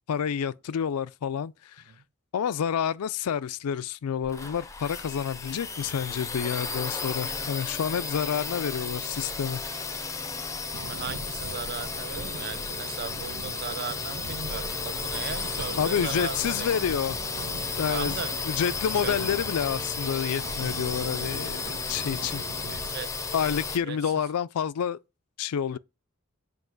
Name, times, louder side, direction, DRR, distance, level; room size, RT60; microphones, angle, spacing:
voice 1, 0.1-1.8 2.3-9.6 15.8-17.2 17.8-18.2 18.4-21.6 21.9-22.4 23.3-25.0 25.4-25.8, left 8 dB, 85° left, 0.4 m, -29 dB
sound 1, 4.2-23.8, left 4 dB, 15° left, 0.5 m, -33 dB
voice 2, 10.7-16.8 17.9-18.4 18.9-19.3 22.7-23.2 23.9-24.3 25.7-25.8, right 6 dB, 45° right, 0.4 m, -37 dB
sound 2, 10.7-22.9, right 3 dB, 75° right, 0.9 m, -43 dB
7.8 x 2.9 x 6.1 m
head